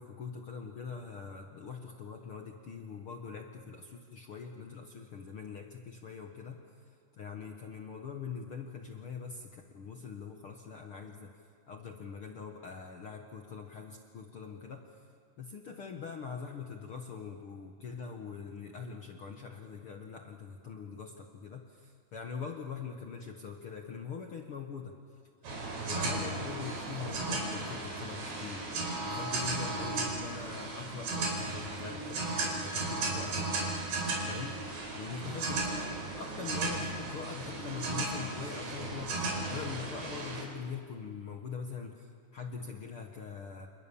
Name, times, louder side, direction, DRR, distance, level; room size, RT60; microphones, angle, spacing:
voice 1, 0.0-6.6 7.1-11.3 11.7-14.8 15.4-24.9 25.9-28.7 29.0-33.7 34.3-34.5 34.9-39.2 39.5-43.7, left 6 dB, 75° left, 3 dB, 1.2 m, -43 dB
sound 1, 25.4-40.4, right 3 dB, 90° right, 6.8 m, -35 dB
29.0 x 28.5 x 7.2 m, 2.4 s
omnidirectional pair, 4.7 m